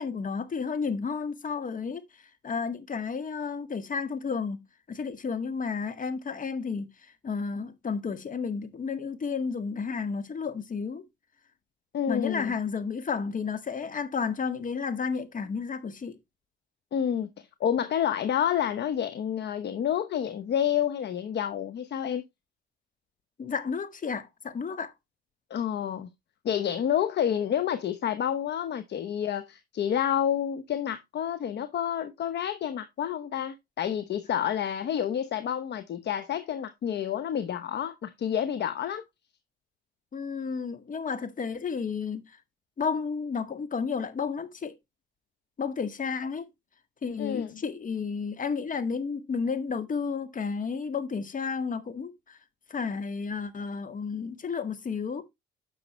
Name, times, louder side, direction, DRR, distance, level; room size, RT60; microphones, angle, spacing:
voice 1, 0.0-2.0 2.4-11.0 12.1-16.2 23.4-24.9 40.1-42.4 42.8-44.7 45.6-46.5 47.0-52.4 52.7-55.2, left 5 dB, 40° left, 1.7 m, -32 dB
voice 2, 11.9-12.5 16.9-22.2 25.5-26.1 26.4-39.0 47.2-47.5, left 9 dB, 60° left, 0.9 m, -29 dB
10.0 x 6.5 x 3.1 m
cardioid pair, 90°, 20 cm